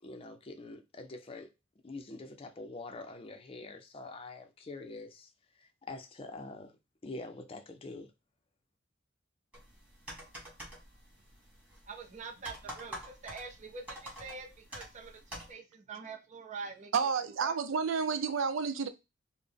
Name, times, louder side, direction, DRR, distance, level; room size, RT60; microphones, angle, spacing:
voice 1, 0.0-1.5 1.8-5.3 5.5-6.8 7.0-8.1, left 2 dB, 30° left, 0.5 m, -45 dB
sound 1, 9.5-15.5, equal, 5° right, 1.6 m, -48 dB
voice 2, 11.9-16.9 17.4-17.6, right 4 dB, 40° right, 0.6 m, -45 dB
voice 3, 16.9-18.9, right 5 dB, 85° right, 0.5 m, -30 dB
4.0 x 2.1 x 3.4 m
head